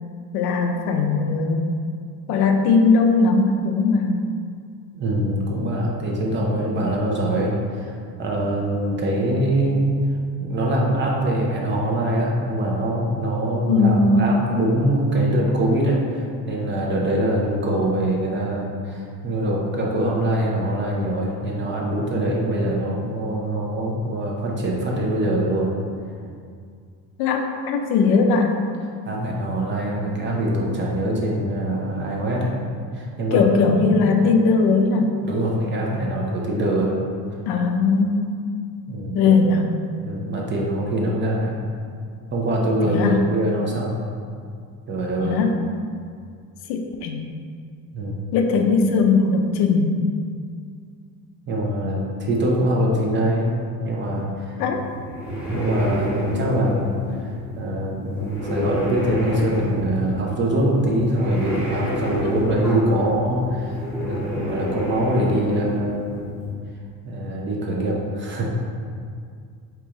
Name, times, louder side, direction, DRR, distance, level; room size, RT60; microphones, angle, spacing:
voice 1, 0.3-1.8 2.3-4.2 13.7-14.2 27.2-28.6 33.3-35.1 37.5-38.4 39.1-39.6 42.9-43.2 45.2-45.6 46.7-47.2 48.3-50.0 54.6-54.8 62.1-62.4, left 4 dB, 75° left, 4 dB, 0.6 m, -19 dB
voice 2, 4.9-10.0 10.4-25.7 29.0-32.6 32.9-33.5 35.2-36.9 38.9-39.3 40.0-41.6 42.3-43.9 44.9-45.4 47.9-48.2 51.5-54.6 55.5-57.0 57.2-66.3 67.0-68.5, right 1 dB, 30° right, -2 dB, 0.6 m, -23 dB
sound 1, 54.7-66.5, equal, 5° right, 1.3 m, -30 dB
4.7 x 3.0 x 3.6 m, 2.2 s
cardioid pair, 145°, 39 cm